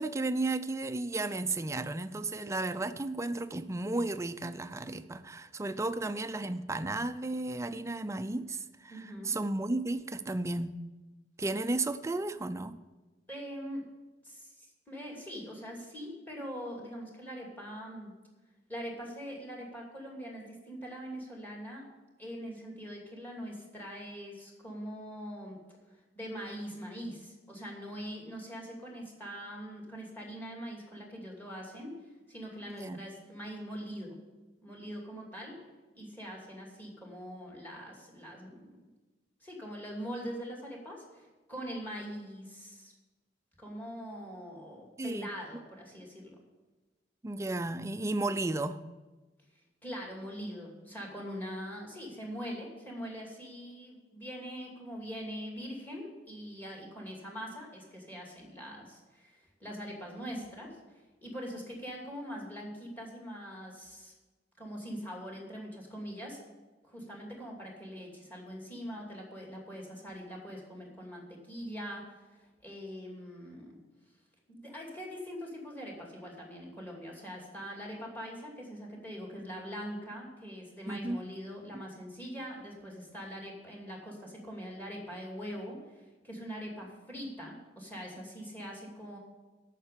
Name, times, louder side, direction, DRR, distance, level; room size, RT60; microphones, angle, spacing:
voice 1, 0.0-10.8 11.4-12.8 32.7-33.0 45.0-45.3 47.2-48.8 80.8-81.2 81.7-81.8, right 2 dB, 15° right, 11 dB, 0.4 m, -34 dB
voice 2, 8.9-9.4 13.3-13.8 14.2-18.2 18.7-21.8 22.2-25.6 26.1-32.0 32.3-34.2 34.6-35.6 35.9-38.8 39.4-42.9 43.6-46.4 49.8-64.1 64.6-66.4 66.8-73.8 74.5-89.2, equal, 10° left, -1 dB, 2.5 m, -43 dB
8.8 x 6.7 x 8.4 m, 1.2 s
head